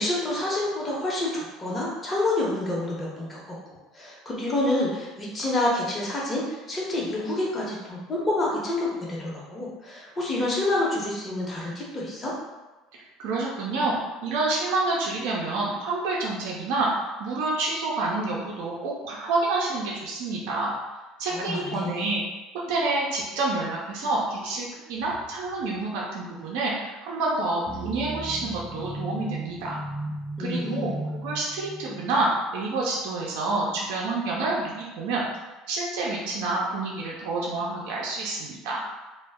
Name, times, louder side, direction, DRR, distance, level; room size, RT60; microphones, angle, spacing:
voice 1, 0.0-3.4 3.9-12.3 21.3-22.0 30.4-31.0, left 2 dB, 25° left, -5 dB, 0.9 m, -28 dB
voice 2, 12.9-20.7 21.2-22.2 22.7-29.8 30.4-35.3 35.7-38.8, right 2 dB, 75° right, -4 dB, 0.5 m, -28 dB
sound 1, 27.7-32.2, right 1 dB, 20° right, 0.4 m, -36 dB
2.1 x 2.0 x 3.4 m, 1.1 s
supercardioid pair, 95°, 0 cm